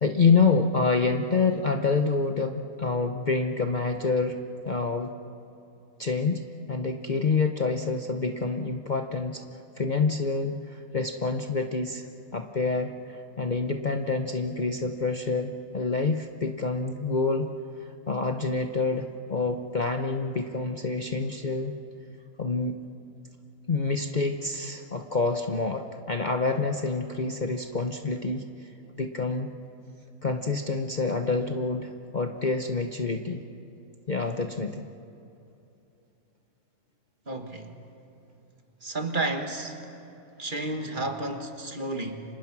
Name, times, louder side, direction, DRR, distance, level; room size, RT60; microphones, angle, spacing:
voice 1, 0.0-4.4 4.6-5.1 6.0-6.4 6.7-9.4 9.8-12.1 12.3-17.5 18.1-21.7 22.4-22.7 23.7-28.4 29.0-29.5 30.2-33.4 34.1-34.8, left 4 dB, 40° left, 5 dB, 0.9 m, -27 dB
voice 2, 37.3-37.8 38.8-39.8 40.4-42.3, right 2 dB, 35° right, 5 dB, 1.8 m, -31 dB
30.0 x 26.5 x 6.0 m, 2.8 s
omnidirectional pair, 1.5 m